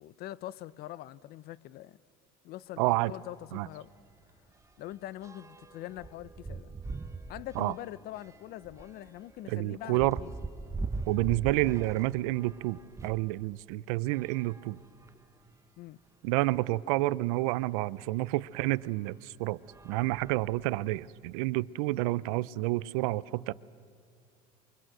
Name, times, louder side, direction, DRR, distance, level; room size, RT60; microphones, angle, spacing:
voice 1, 0.0-2.0 2.4-3.9 4.8-6.7 7.3-10.3 15.8-16.0, left 14 dB, 60° left, 0.6 m, -43 dB
voice 2, 2.8-3.1 3.5-3.7 7.6-7.7 9.5-10.2 11.1-14.8 16.2-19.6 19.8-23.5, right 19 dB, 85° right, 0.5 m, -29 dB
sound 1, 3.4-3.6 3.9-13.3 14.1-15.4 16.1-16.2 16.4-16.5 18.2-18.3 19.0-19.3 19.6-20.9, right 3 dB, 15° right, 0.9 m, -42 dB
27.0 x 23.5 x 6.2 m
supercardioid pair, 90°, 18 cm